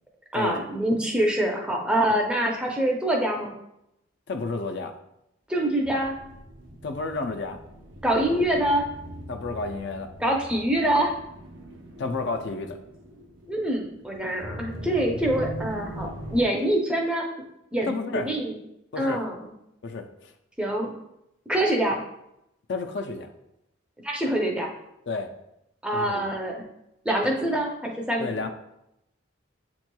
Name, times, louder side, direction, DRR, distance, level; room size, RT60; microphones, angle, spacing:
voice 1, 0.3-3.5 5.5-6.1 8.0-8.8 10.2-11.1 13.5-17.3 17.7-18.5 19.0-19.5 20.6-20.9 21.5-22.0 24.0-24.7 25.8-26.6 27.0-28.3, right 1 dB, 5° right, 0 dB, 0.5 m, -25 dB
voice 2, 4.3-4.9 6.8-7.6 9.3-10.1 12.0-12.8 17.9-18.3 18.9-19.2 19.8-20.3 22.7-23.3 25.1-25.3 25.9-26.3 28.2-28.5, left 3 dB, 55° left, 6 dB, 0.4 m, -31 dB
sound 1, 5.8-16.4, equal, 70° right, 0.8 m, -41 dB
7.7 x 3.0 x 2.2 m, 0.83 s
head